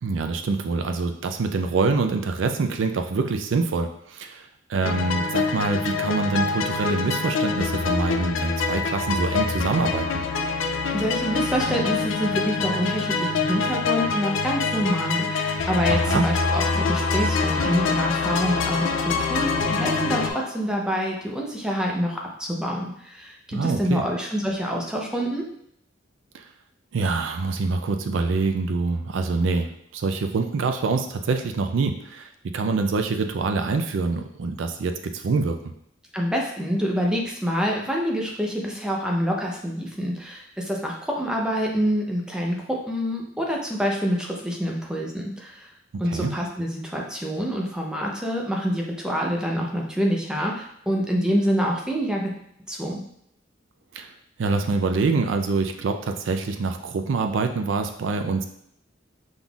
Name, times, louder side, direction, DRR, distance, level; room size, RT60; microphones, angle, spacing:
voice 1, 0.0-10.2 15.9-16.2 23.5-24.0 26.3-26.4 26.9-35.6 46.0-46.3 53.9-54.1 54.4-58.5, right 4 dB, 80° right, 6 dB, 0.4 m, -25 dB
sound 1, 4.8-20.3, left 4 dB, 90° left, 0.4 m, -25 dB
voice 2, 10.9-25.5 36.1-45.7 46.0-52.3 52.7-53.0, equal, 5° right, -1 dB, 0.7 m, -26 dB
Singing / Musical instrument, 16.3-21.2, left 4 dB, 35° left, 0.5 m, -30 dB
5.4 x 3.8 x 2.4 m, 0.71 s
head